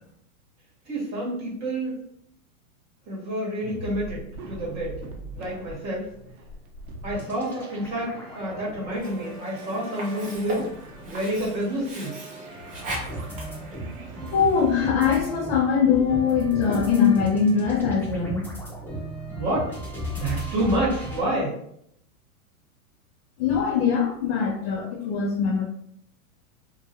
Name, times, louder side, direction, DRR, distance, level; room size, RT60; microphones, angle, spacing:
voice 1, 0.9-2.0 3.1-5.0 5.3-6.1 7.0-10.6 11.0-12.2 19.3-19.7 20.1-21.5, right 1 dB, 40° right, -5 dB, 1.0 m, -28 dB
sound 1, 3.6-15.2, right 1 dB, 85° right, 0.6 m, -43 dB
sound 2, 7.1-11.2 11.7-21.2, right 1 dB, 5° left, 0.9 m, -37 dB
Sink (filling or washing), 8.9-14.9, right 1 dB, 20° right, 0.4 m, -39 dB
voice 2, 14.3-18.5 23.4-25.6, left 6 dB, 45° left, -4 dB, 0.5 m, -22 dB
2.3 x 2.2 x 2.8 m, 0.72 s
hypercardioid pair, 125°, 43 cm